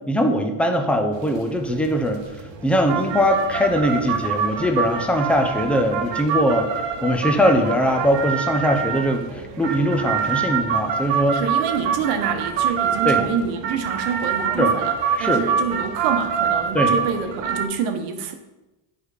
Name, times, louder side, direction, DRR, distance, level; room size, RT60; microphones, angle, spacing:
voice 1, 0.1-2.2 2.6-6.7 7.0-9.3 9.6-11.4 13.0-13.2 14.6-14.7 15.2-15.5 16.7-16.9, equal, ahead, 4 dB, 0.7 m, -21 dB
sound 1, 1.1-17.6, right 7 dB, 60° right, 1.2 m, -25 dB
voice 2, 11.3-14.9 15.2-18.3, right 6 dB, 85° right, 6 dB, 1.3 m, -26 dB
9.8 x 4.9 x 4.9 m, 1.1 s
cardioid pair, 150°, 50 cm